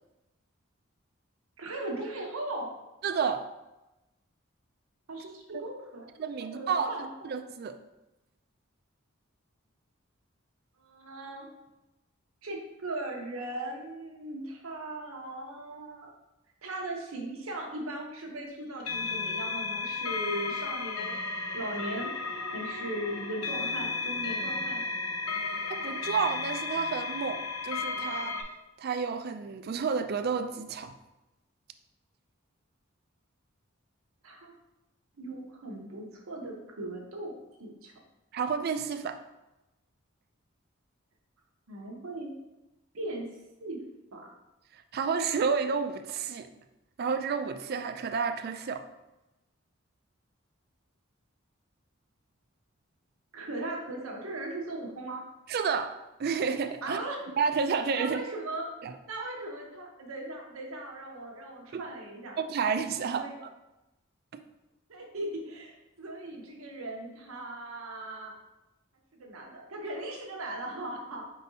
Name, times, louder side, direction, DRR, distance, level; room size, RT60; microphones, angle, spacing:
voice 1, 1.6-2.7 5.1-6.1 6.4-7.1 10.8-11.5 12.4-16.1 16.6-21.2 21.5-22.1 22.5-24.8 34.2-34.5 35.2-37.3 37.6-37.9 41.7-42.3 42.9-43.3 43.6-43.8 44.1-44.3 53.3-55.2 56.8-57.2 58.0-58.7 59.1-62.4 63.1-63.3 64.9-68.3 69.1-71.3, right 1 dB, 90° right, 0 dB, 0.9 m, -38 dB
voice 2, 3.0-3.4 5.5-5.6 6.2-6.9 7.2-7.8 25.7-28.3 28.8-30.9 38.3-39.2 44.9-46.5 47.0-48.8 55.5-55.9 56.2-57.0 57.4-58.2 58.8-58.9 61.7-61.8 62.5-63.5, right 5 dB, 50° right, 8 dB, 0.3 m, -30 dB
sound 1, 18.8-28.4, left 3 dB, 90° left, 0.6 m, -34 dB
4.6 x 4.1 x 2.7 m, 0.98 s
head